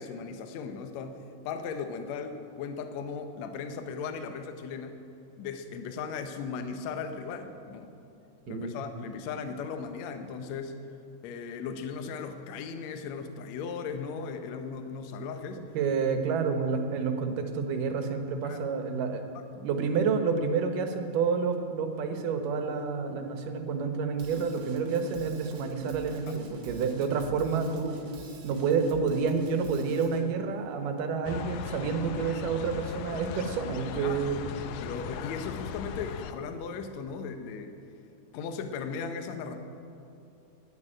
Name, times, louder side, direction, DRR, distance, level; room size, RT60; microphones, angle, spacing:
voice 1, 0.0-5.0 5.4-7.9 8.5-10.8 11.2-15.6 18.4-18.6 19.4-19.7 26.3-26.4 34.0-34.2 34.8-37.8 38.3-39.6, left 5 dB, 70° left, 7 dB, 1.9 m, -37 dB
voice 2, 15.7-19.2 19.6-28.0 28.4-34.5, right 5 dB, 80° right, 6 dB, 2.6 m, -29 dB
Drum kit / Drum, 24.2-30.2, right 4 dB, 55° right, 1.7 m, -47 dB
sound 1, 31.3-36.3, left 8 dB, 90° left, 2.3 m, -38 dB
9.7 x 9.3 x 9.9 m, 2.7 s
omnidirectional pair, 3.8 m